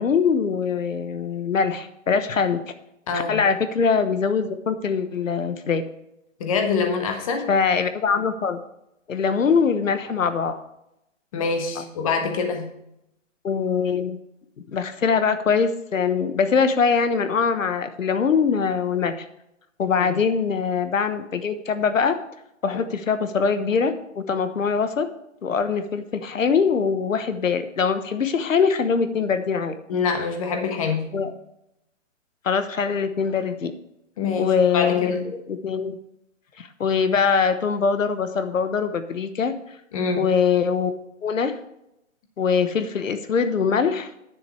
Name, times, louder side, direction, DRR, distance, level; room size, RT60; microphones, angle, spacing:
voice 1, 0.0-2.6 3.1-5.8 7.5-8.6 9.1-10.6 11.8-11.9 13.4-14.2 14.7-19.2 19.8-22.2 22.6-25.1 25.4-29.7 31.1-31.3 32.4-33.7 34.4-36.0 36.6-39.5 40.2-40.9 41.2-41.5 42.4-44.1, left 6 dB, 80° left, 10 dB, 1.2 m, -22 dB
voice 2, 3.1-3.4 6.4-7.5 11.3-12.7 20.0-20.2 29.9-31.1 34.2-35.2 39.9-40.2, left 5 dB, 25° left, 4 dB, 1.4 m, -25 dB
9.9 x 7.6 x 4.7 m, 0.84 s
hypercardioid pair, 165°, 39 cm